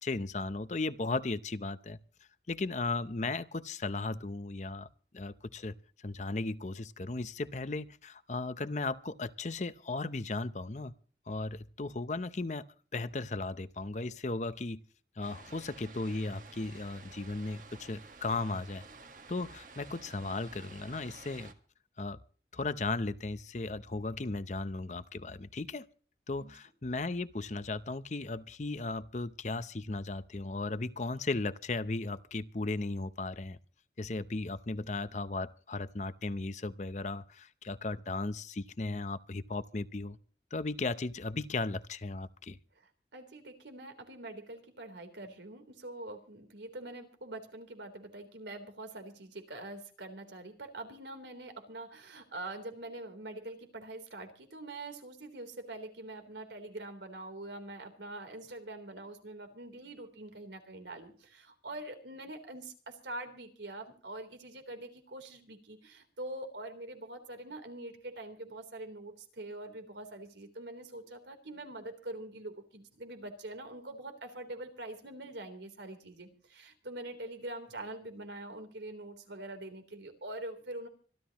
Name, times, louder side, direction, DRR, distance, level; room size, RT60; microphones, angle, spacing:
voice 1, 0.0-2.0 2.5-4.9 5.1-10.9 11.3-12.7 12.9-14.8 15.2-18.8 19.3-21.5 22.0-22.2 22.5-25.9 26.3-33.6 34.0-40.2 40.5-42.6, left 3 dB, 40° left, 0.7 m, -36 dB
sound 1, 15.2-21.5, right 4 dB, 45° right, 1.6 m, -52 dB
voice 2, 42.8-80.9, right 2 dB, 85° right, 3.5 m, -44 dB
25.5 x 12.0 x 3.0 m
head